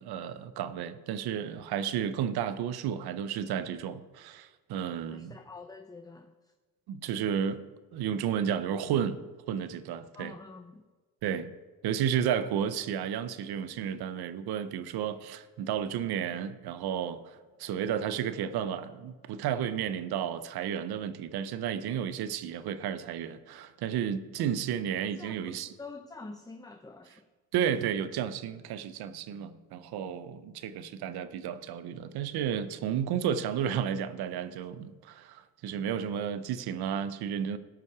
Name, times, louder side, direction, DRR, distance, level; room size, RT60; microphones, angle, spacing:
voice 1, 0.0-5.3 6.9-7.6 7.9-9.2 9.5-10.3 11.2-11.5 11.8-25.7 27.5-37.6, right 8 dB, 90° right, 0.7 m, -32 dB
voice 2, 5.1-6.5 10.1-10.8 25.2-27.3, left 3 dB, 10° left, 0.5 m, -47 dB
16.5 x 5.8 x 4.7 m
cardioid pair, 70°, 37 cm